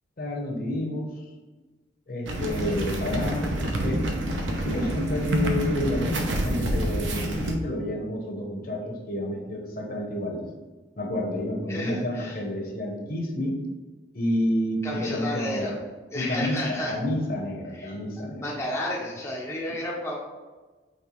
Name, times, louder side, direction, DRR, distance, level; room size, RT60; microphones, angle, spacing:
voice 1, 0.2-1.2 2.1-4.0 4.6-6.1 6.4-10.4 11.0-13.6 14.1-15.8 16.1-18.4, left 1 dB, 50° left, 1 dB, 0.8 m, -29 dB
sound 1, 2.3-7.5, right 1 dB, 85° right, 0.7 m, -27 dB
voice 2, 11.7-12.4 14.8-15.8 16.1-17.0 17.7-17.9 18.4-20.2, left 1 dB, 15° left, -4 dB, 0.5 m, -32 dB
5.4 x 3.2 x 3.0 m, 1.3 s
head